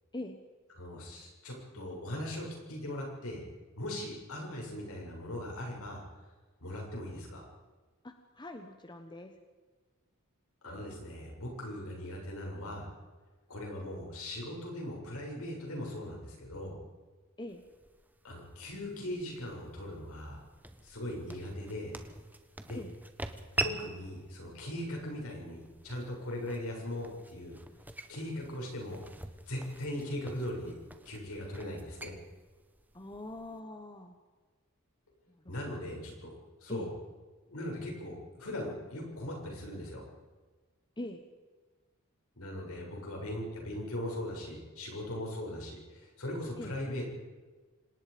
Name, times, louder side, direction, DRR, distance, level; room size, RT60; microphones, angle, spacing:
voice 1, 0.8-3.4 3.8-6.0 6.6-7.5 10.6-12.9 13.5-16.8 18.2-20.4 20.8-21.9 22.6-22.8 23.6-27.5 28.1-29.0 29.5-30.7 31.1-32.1 35.5-36.3 36.6-36.9 37.5-40.0 42.4-47.1, left 1 dB, 70° left, 0 dB, 7.2 m, -39 dB
voice 2, 8.0-9.3 17.4-17.6 22.7-22.9 32.9-34.1 35.3-35.5 36.7-36.9 41.0-41.2 46.6-46.8, left 1 dB, 20° left, 6 dB, 1.2 m, -43 dB
sound 1, 17.5-33.6, right 2 dB, 10° right, 1.2 m, -44 dB
26.5 x 19.0 x 5.3 m, 1.3 s
head